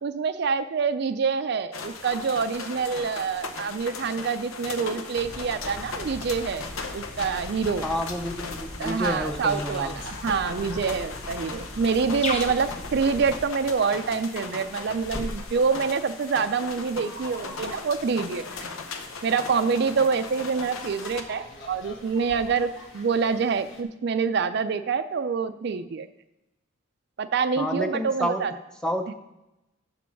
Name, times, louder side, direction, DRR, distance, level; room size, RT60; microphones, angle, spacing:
voice 1, 0.0-6.6 6.9-7.8 8.8-18.7 19.2-26.1 27.2-28.5, right 5 dB, 55° right, 10 dB, 0.4 m, -26 dB
sound 1, 1.7-21.2, left 4 dB, 85° left, 0.9 m, -38 dB
sound 2, 5.1-13.4, left 1 dB, 30° left, 1.1 m, -39 dB
voice 2, 7.8-10.0 27.6-28.5 28.8-29.1, equal, 5° left, 6 dB, 0.6 m, -29 dB
sound 3, 10.0-23.8, left 1 dB, 65° left, 1.3 m, -44 dB
7.3 x 6.1 x 5.9 m, 0.96 s
head